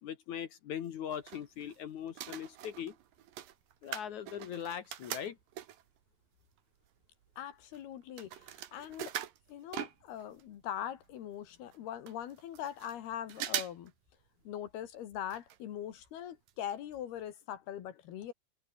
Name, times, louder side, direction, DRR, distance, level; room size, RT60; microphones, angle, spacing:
voice 1, 0.0-3.0 3.8-5.4, left 9 dB, 60° left, 2.3 m, -40 dB
sound 1, 0.9-1.8 2.1-6.0 6.6-6.7 6.9-10.5 10.8-10.9 11.0-11.1 11.7-11.8 12.1-13.0 13.3-13.9 14.2-14.3 15.3-15.6 15.9-16.0 16.5-16.6 16.9-17.0, right 12 dB, 65° right, 3.0 m, -42 dB
voice 2, 7.4-9.1 9.5-13.9 14.5-18.3, left 10 dB, 75° left, 3.7 m, -42 dB
omnidirectional pair, 4.6 m